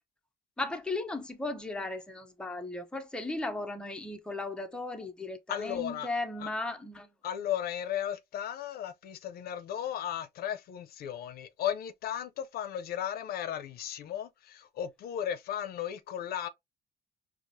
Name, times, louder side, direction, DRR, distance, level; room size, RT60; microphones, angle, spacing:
voice 1, 0.6-7.1, left 2 dB, 5° left, 0.6 m, -36 dB
voice 2, 5.5-6.1 6.4-6.5 7.2-16.5, left 10 dB, 65° left, 0.6 m, -35 dB
4.7 x 2.1 x 2.6 m
cardioid pair, 110°, 17 cm